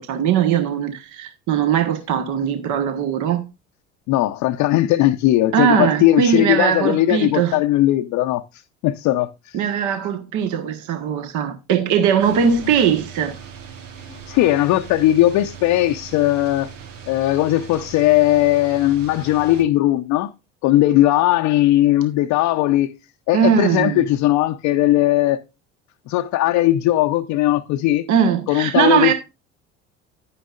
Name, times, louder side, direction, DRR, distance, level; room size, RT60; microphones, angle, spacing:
voice 1, 0.0-3.4 5.5-7.6 9.5-13.3 23.3-24.0 28.1-29.1, right 8 dB, 50° right, 1.4 m, -20 dB
voice 2, 4.1-8.4 8.8-9.6 12.6-12.7 14.3-16.7 17.1-20.3 20.6-22.9 23.3-25.4 26.1-28.1 28.5-29.1, left 15 dB, 50° left, 0.7 m, -18 dB
sound 1, 12.2-19.6, right 7 dB, 80° right, 1.3 m, -39 dB
10.0 x 9.7 x 2.5 m
figure-of-eight pair, 65°, 38 cm